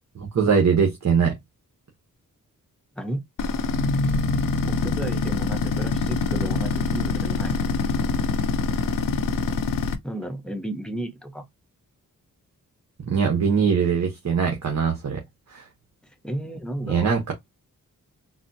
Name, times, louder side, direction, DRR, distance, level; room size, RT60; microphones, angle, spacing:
voice 1, 0.1-1.4 13.0-15.2 15.5-15.6 16.8-17.3, right 6 dB, 55° right, 1.1 m, -22 dB
sound 1, 3.4-10.0, left 4 dB, 70° left, 0.6 m, -24 dB
voice 2, 4.6-7.6 10.0-11.4 16.2-17.1, right 1 dB, 5° left, 0.7 m, -32 dB
4.1 x 2.0 x 2.6 m
cardioid pair, 75°, 34 cm